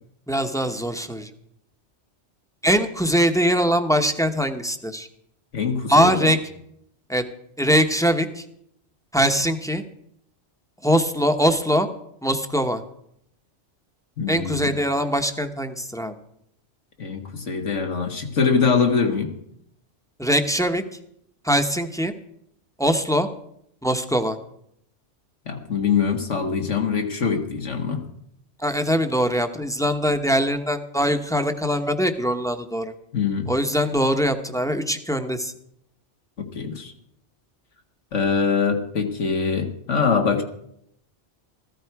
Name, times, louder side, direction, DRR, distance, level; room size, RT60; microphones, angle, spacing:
voice 1, 0.3-1.3 2.6-5.1 5.9-6.4 7.1-7.2 7.6-8.4 9.1-9.8 10.8-11.9 12.2-12.8 14.3-16.1 20.2-20.8 21.4-22.1 22.8-23.3 23.8-24.4 28.6-32.9 33.5-35.5, equal, 5° left, 7 dB, 0.9 m, -22 dB
voice 2, 5.5-6.3 14.2-14.7 17.0-19.3 25.5-28.0 33.1-33.5 36.4-36.9 38.1-40.4, left 5 dB, 90° left, 4 dB, 2.1 m, -23 dB
15.0 x 14.0 x 4.7 m, 0.73 s
omnidirectional pair, 1.2 m